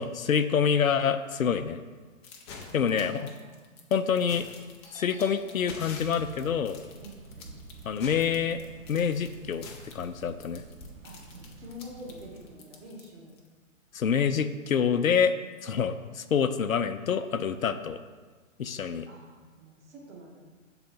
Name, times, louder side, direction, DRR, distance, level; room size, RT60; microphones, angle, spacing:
voice 1, 0.0-1.8 2.7-3.3 3.9-4.5 4.9-6.8 7.9-8.6 8.9-9.6 9.9-10.6 13.9-18.0 18.6-19.1, left 7 dB, 90° left, 10 dB, 0.5 m, -26 dB
sound 1, 2.2-13.5, left 5 dB, 20° left, 0.5 m, -47 dB
voice 2, 2.7-3.6 7.0-7.2 11.0-13.3 19.1-20.5, equal, 55° right, -3 dB, 1.9 m, -46 dB
Doorbell, 4.8-9.0 9.3-10.9, left 1 dB, 5° left, 0.9 m, -53 dB
sound 2, 5.9-12.6, right 4 dB, 85° right, 0.9 m, -49 dB
6.8 x 3.9 x 4.4 m, 1.4 s
figure-of-eight pair, 120°, 40 cm